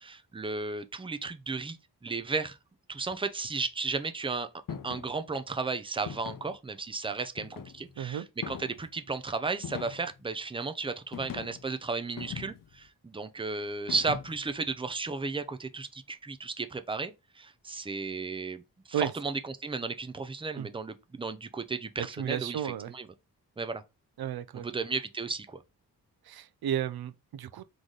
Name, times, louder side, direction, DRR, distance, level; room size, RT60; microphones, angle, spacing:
voice 1, 0.0-1.8 2.0-2.6 2.9-18.6 18.9-23.1 23.6-23.8 24.5-25.6, right 4 dB, 15° right, 0.5 m, -34 dB
sound 1, 4.7-5.1 6.1-6.6 7.4-7.9 8.4-8.9 9.6-10.2 11.1-11.7 12.2-12.8 13.9-14.5, left 7 dB, 55° left, 0.6 m, -41 dB
voice 2, 8.0-8.3 18.9-19.1 20.5-20.7 22.0-22.9 24.2-24.7 26.3-27.6, right 10 dB, 70° right, 0.5 m, -33 dB
3.9 x 3.2 x 3.8 m
wide cardioid pair, 100°, 39 cm